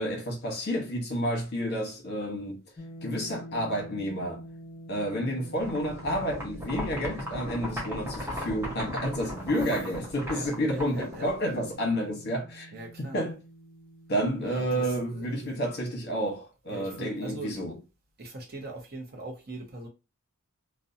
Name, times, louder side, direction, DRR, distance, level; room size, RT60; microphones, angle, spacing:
voice 1, 0.0-2.6 3.0-4.4 4.9-12.7 13.1-13.4 14.1-17.8, equal, 50° left, 0.9 m, -30 dB
sound 1, 2.8-15.9, right 1 dB, 30° left, 0.3 m, -47 dB
sound 2, 5.6-11.7, left 1 dB, 10° right, 0.7 m, -37 dB
voice 2, 10.3-11.5 12.7-13.2 14.4-15.6 16.7-17.6 18.2-19.9, right 2 dB, 45° right, 0.7 m, -41 dB
2.6 x 2.2 x 2.6 m
head